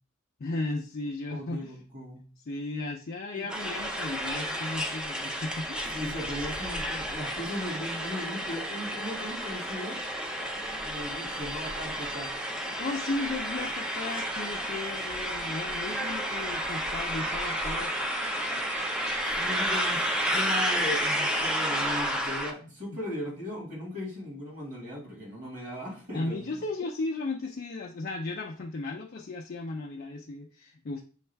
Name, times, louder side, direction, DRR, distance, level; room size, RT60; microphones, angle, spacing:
voice 1, 0.4-1.7 2.5-6.1 12.6-18.2 26.1-31.0, left 2 dB, 50° left, -1 dB, 0.4 m, -35 dB
voice 2, 1.3-2.3 3.3-3.4 5.9-10.0 10.8-12.3 19.3-26.6, left 1 dB, 40° right, -2 dB, 1.9 m, -37 dB
sound 1, 3.5-22.5, equal, 5° right, 0.5 m, -31 dB
6.2 x 2.4 x 3.3 m, 0.38 s
head